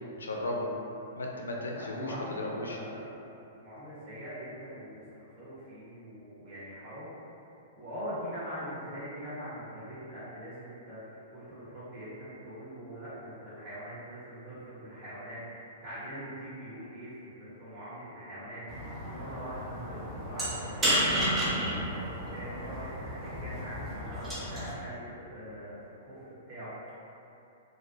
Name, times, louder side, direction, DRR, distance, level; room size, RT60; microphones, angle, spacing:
voice 1, 0.2-0.7 1.2-2.8, left 2 dB, 75° left, -1 dB, 0.4 m, -35 dB
voice 2, 1.7-3.2 3.6-7.1 7.8-27.0, equal, 35° right, -11 dB, 0.9 m, -43 dB
sound 1, 18.7-24.7, equal, 15° right, 0.6 m, -32 dB
2.1 x 2.0 x 3.1 m, 2.8 s
figure-of-eight pair, 110°, 0 cm